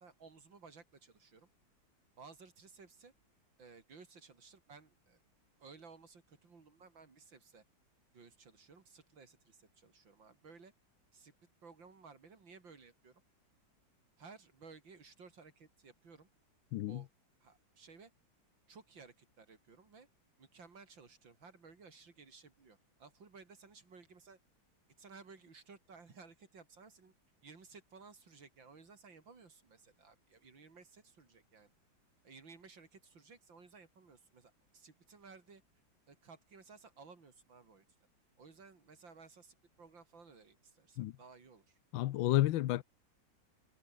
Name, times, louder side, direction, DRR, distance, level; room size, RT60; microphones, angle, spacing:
voice 1, 0.0-1.5 2.2-3.1 3.6-5.2 5.6-7.6 8.1-10.7 11.1-11.3 11.6-13.2 14.2-16.3 16.9-17.1 17.4-18.1 18.7-20.1 20.4-24.4 25.0-27.1 27.4-31.7 32.2-35.6 36.1-37.9 38.4-41.8, right 4 dB, 75° right, 4.0 m, -57 dB
voice 2, 41.9-42.8, left 15 dB, 85° left, 1.4 m, -31 dB
omnidirectional pair, 2.1 m